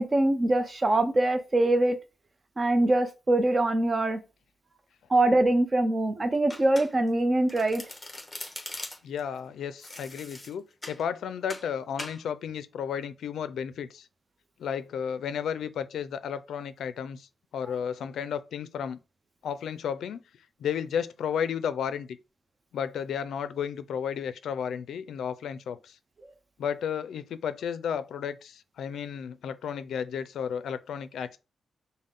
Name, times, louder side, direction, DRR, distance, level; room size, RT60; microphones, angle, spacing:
voice 1, 0.0-2.0 2.6-4.2 5.1-7.8, right 2 dB, 30° right, 0.6 m, -23 dB
Domestic sounds home sounds, 6.5-7.2 7.5-9.2 9.8-11.0 11.5-11.7 12.0-12.2, left 1 dB, 10° left, 1.0 m, -41 dB
voice 2, 9.0-14.1 14.6-17.3 17.5-19.0 19.4-20.2 20.6-22.2 22.7-26.0 26.6-31.4, left 8 dB, 85° left, 0.4 m, -33 dB
5.3 x 2.1 x 3.7 m
cardioid pair, 100°, 0 cm